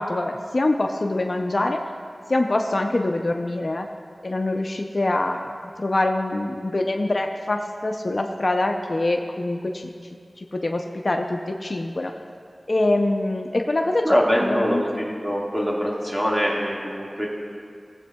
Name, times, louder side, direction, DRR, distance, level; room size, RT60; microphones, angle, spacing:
voice 1, 0.0-1.8 2.3-3.9 4.2-9.9 10.4-12.1 12.7-15.1, left 2 dB, 55° left, 4 dB, 0.5 m, -24 dB
voice 2, 14.0-17.3, equal, 15° right, -4 dB, 1.8 m, -23 dB
19.5 x 7.7 x 2.3 m, 2.3 s
wide cardioid pair, 50°, 0 cm